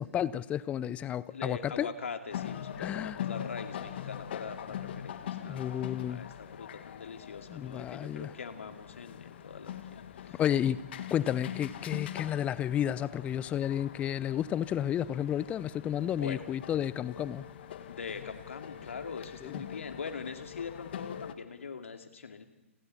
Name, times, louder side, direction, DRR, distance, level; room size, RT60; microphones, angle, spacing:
voice 1, 0.0-1.9 2.8-3.2 5.5-6.2 7.5-8.3 10.4-10.8 11.1-17.5 19.4-19.6, left 10 dB, 15° left, 19 dB, 0.7 m, -32 dB
voice 2, 1.3-5.8 6.1-10.4 16.1-16.4 17.9-22.4, left 5 dB, 70° left, 6 dB, 2.4 m, -42 dB
sound 1, 2.3-21.3, left 10 dB, 50° left, 1.7 m, -43 dB
30.0 x 20.5 x 4.3 m, 0.97 s
figure-of-eight pair, 125°, 7 cm